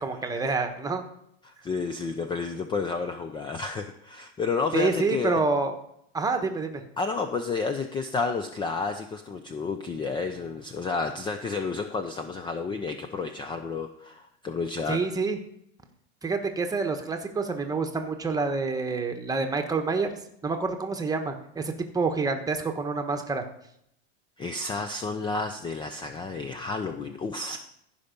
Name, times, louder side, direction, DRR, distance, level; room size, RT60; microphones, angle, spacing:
voice 1, 0.0-1.0 4.7-5.7 6.1-6.8 14.9-15.4 16.2-20.1 20.4-23.4, right 4 dB, 10° right, 5 dB, 1.2 m, -27 dB
voice 2, 1.4-5.3 7.0-15.0 24.4-27.6, left 4 dB, 15° left, 7 dB, 0.6 m, -31 dB
15.0 x 5.5 x 5.3 m, 0.74 s
supercardioid pair, 130°, 32 cm